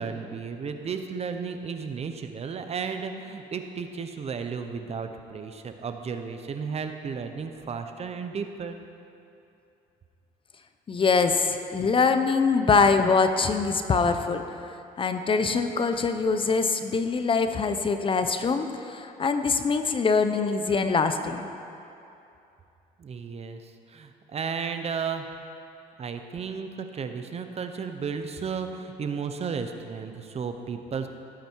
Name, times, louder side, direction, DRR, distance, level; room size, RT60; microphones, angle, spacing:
voice 1, 0.0-8.8 23.0-25.3 26.0-31.1, right 6 dB, 40° right, 7 dB, 0.9 m, -34 dB
voice 2, 10.9-14.4 15.0-21.5, left 4 dB, 30° left, 8 dB, 0.7 m, -23 dB
17.5 x 9.0 x 4.7 m, 2.7 s
cardioid pair, 110°, 17 cm